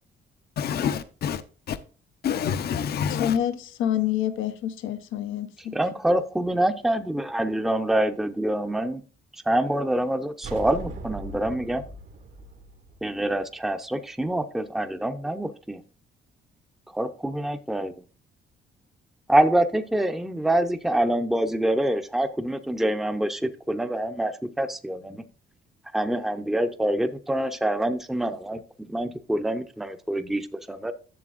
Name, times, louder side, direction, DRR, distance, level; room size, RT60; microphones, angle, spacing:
voice 1, 0.6-1.4 1.7-1.8 2.2-3.4, left 8 dB, 55° left, 0.6 m, -27 dB
voice 2, 3.1-5.7, left 10 dB, 85° left, 0.7 m, -27 dB
voice 3, 5.7-9.0 9.5-11.8 13.0-15.8 16.9-17.9 19.3-25.2 25.9-28.6 28.9-30.9, right 1 dB, ahead, 0.6 m, -26 dB
sound 1, 10.4-13.9, right 3 dB, 75° right, 2.0 m, -40 dB
11.0 x 6.8 x 2.5 m
cardioid pair, 90°, 20 cm